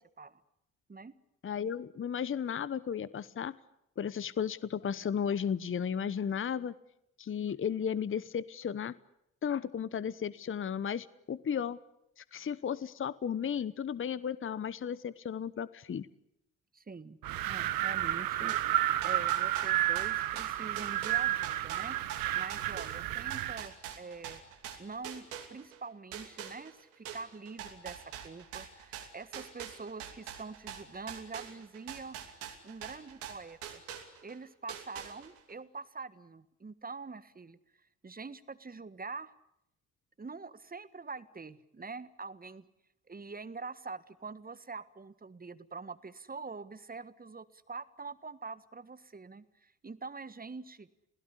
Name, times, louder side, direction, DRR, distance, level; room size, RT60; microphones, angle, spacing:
voice 1, 1.4-3.6 4.0-6.7 7.2-8.9 9.4-11.8 12.2-16.1, left 8 dB, 35° left, 18 dB, 1.0 m, -34 dB
voice 2, 16.7-17.2 17.4-18.6 19.0-22.0 22.3-24.4 24.8-32.2 32.6-33.8 34.2-37.6 38.0-39.3 40.2-42.7 43.1-50.9, right 4 dB, 25° right, 14 dB, 1.6 m, -45 dB
Wind, 17.2-23.7, right 14 dB, 60° right, 1.2 m, -31 dB
sound 1, 18.5-25.8 26.1-34.4 34.7-35.5, right 9 dB, 80° right, 2.9 m, -44 dB
28.5 x 17.0 x 10.0 m, 0.82 s
hypercardioid pair, 50°, 38 cm